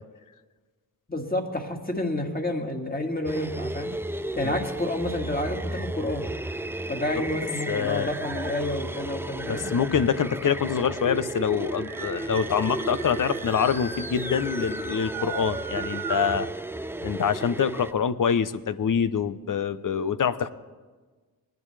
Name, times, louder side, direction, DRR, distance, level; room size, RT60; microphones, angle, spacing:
voice 1, 1.1-3.9 4.4-6.3 6.9-9.7, left 1 dB, 20° left, 2 dB, 2.2 m, -29 dB
sound 1, 3.3-17.9, right 1 dB, 5° right, 0.5 m, -34 dB
sound 2, 6.2-7.7 8.2-8.9 9.9-10.0 10.2-10.3 10.6-16.4, right 5 dB, 55° right, 1.8 m, -39 dB
voice 2, 7.7-8.1 9.4-16.5 17.0-20.5, left 7 dB, 50° left, 14 dB, 0.8 m, -25 dB
20.0 x 10.5 x 3.3 m, 1.3 s
supercardioid pair, 45°, 40 cm